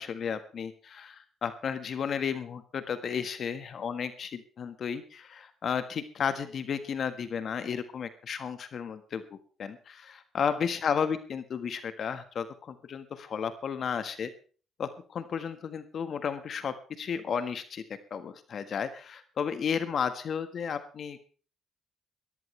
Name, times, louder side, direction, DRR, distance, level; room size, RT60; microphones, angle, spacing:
voice 1, 0.0-14.3 14.8-17.8 18.1-21.2, left 7 dB, 55° left, 10 dB, 1.5 m, -33 dB
20.0 x 14.0 x 3.3 m, 0.40 s
cardioid pair, 90°, 0 cm